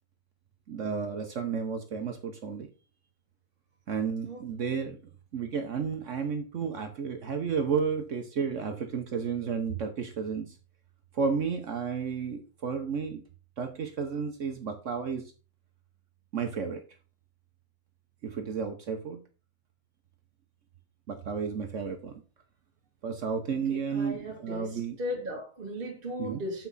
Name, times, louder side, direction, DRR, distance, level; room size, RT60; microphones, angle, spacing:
voice 1, 0.7-2.7 3.9-5.0 5.3-10.5 11.1-13.2 13.6-15.3 16.3-16.8 18.2-19.2 21.1-22.1 23.0-25.0 26.2-26.4, right 6 dB, 60° right, 0.7 m, -32 dB
voice 2, 23.5-26.7, left 1 dB, 30° right, 1.4 m, -37 dB
7.1 x 6.0 x 4.0 m
omnidirectional pair, 2.3 m